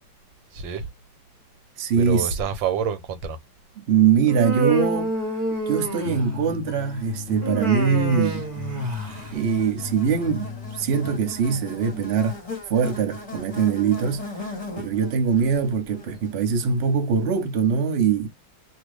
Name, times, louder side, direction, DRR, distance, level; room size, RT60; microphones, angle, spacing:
voice 1, 0.5-0.9 1.9-3.4 8.2-8.4 8.8-9.4, right 7 dB, 80° right, 1.5 m, -29 dB
voice 2, 1.8-2.3 3.8-5.1 5.7-8.5 9.1-12.4 12.7-14.3 14.8-18.3, right 6 dB, 60° right, 0.6 m, -22 dB
Human voice, 4.3-6.5 7.4-9.3, right 2 dB, 35° right, 1.0 m, -27 dB
sound 1, 6.0-12.1, left 5 dB, 55° left, 1.1 m, -37 dB
Buzz, 6.9-17.3, left 3 dB, 25° left, 1.0 m, -40 dB
2.8 x 2.6 x 3.1 m
omnidirectional pair, 2.1 m